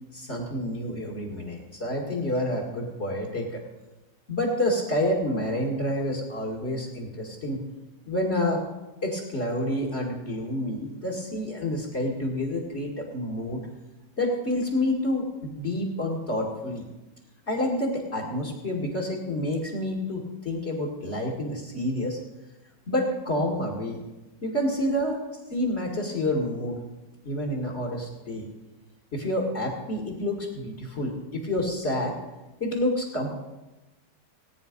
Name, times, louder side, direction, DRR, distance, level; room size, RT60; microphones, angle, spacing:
voice 1, 0.1-3.6 4.3-7.6 8.1-8.6 9.0-13.6 14.2-16.8 17.5-22.2 22.9-24.0 24.4-25.2 25.5-26.8 27.2-28.5 29.1-32.1 32.6-33.4, left 1 dB, 40° left, -1 dB, 2.2 m, -28 dB
18.5 x 9.5 x 5.3 m, 1.1 s
omnidirectional pair, 1.9 m